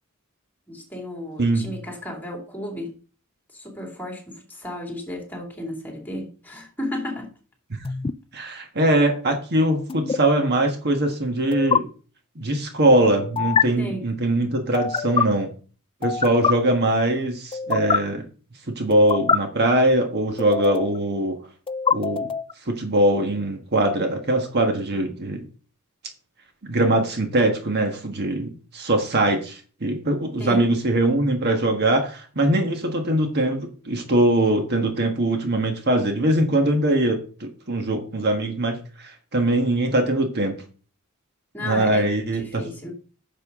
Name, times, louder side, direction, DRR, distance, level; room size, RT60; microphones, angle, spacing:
voice 1, 0.7-3.0 3.5-7.3 13.8-14.1 30.4-30.7 41.5-42.1 42.3-42.9, left 1 dB, 10° left, 2.5 m, -33 dB
sound 1, 7.8-8.1 9.9-10.2 11.5-11.8 13.4-13.6 14.7-15.2 16.0-16.5 17.5-18.0 18.9-19.4 20.4-21.0 21.7-22.5, left 6 dB, 25° left, 0.3 m, -23 dB
voice 2, 8.3-11.8 12.4-15.5 16.0-18.2 18.7-21.4 21.9-22.3 22.7-25.4 26.6-40.6 41.6-42.7, right 1 dB, 50° right, 1.4 m, -22 dB
10.5 x 6.8 x 3.7 m
head